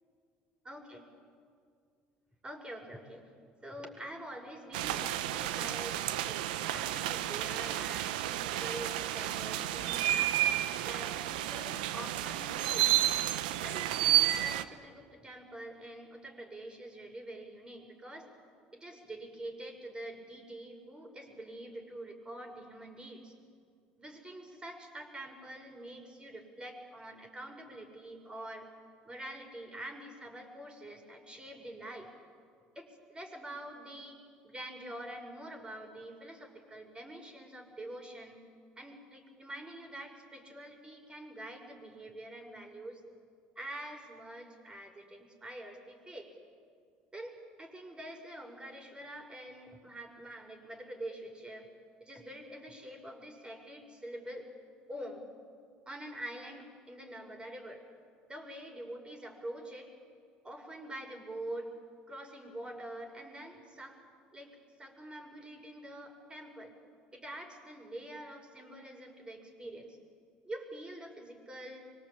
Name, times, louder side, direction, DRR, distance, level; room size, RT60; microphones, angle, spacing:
voice 1, 0.7-1.0 2.4-3.2 3.6-13.0 13.6-18.3 18.7-23.3 24.0-28.7 29.0-32.1 32.7-38.4 38.8-43.0 43.6-46.3 47.1-51.7 52.0-54.5 54.9-55.3 55.9-57.8 58.3-59.9 60.4-61.8 62.1-64.0 64.3-66.7 67.1-70.0 70.4-71.9, right 1 dB, 20° right, 3 dB, 6.3 m, -46 dB
sound 1, 4.7-14.6, right 13 dB, 80° right, 0.9 m, -31 dB
24.5 x 24.5 x 8.9 m, 2.2 s
hypercardioid pair, 65°, 5 cm